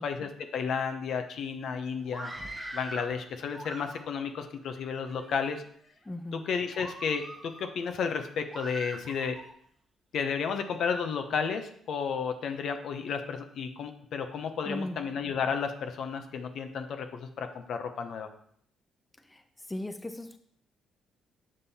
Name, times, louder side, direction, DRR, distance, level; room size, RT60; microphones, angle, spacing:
voice 1, 0.0-2.3 2.7-5.6 6.3-9.4 10.1-18.3, left 6 dB, 70° left, 6 dB, 0.9 m, -32 dB
Screaming, 2.0-3.1 3.5-4.3 5.0-5.5 6.0-6.2 6.7-7.7 8.5-9.5, right 2 dB, 20° right, 1.2 m, -42 dB
voice 2, 6.1-6.4 14.7-15.0 19.3-19.4 19.7-20.4, left 1 dB, 15° left, 8 dB, 0.6 m, -37 dB
7.5 x 5.3 x 4.2 m, 0.63 s
cardioid pair, 90°, 0 cm